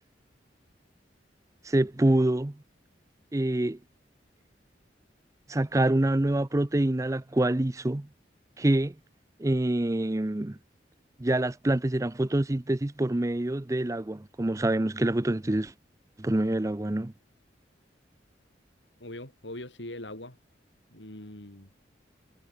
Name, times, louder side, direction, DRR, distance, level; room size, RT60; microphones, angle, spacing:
voice 1, 1.6-2.6 3.3-3.8 5.5-8.1 8.6-8.9 9.4-10.6 11.2-15.7 16.2-17.1, right 1 dB, 20° right, 0.5 m, -26 dB
voice 2, 19.0-20.4 20.9-21.7, left 1 dB, 85° left, 6.5 m, -41 dB
head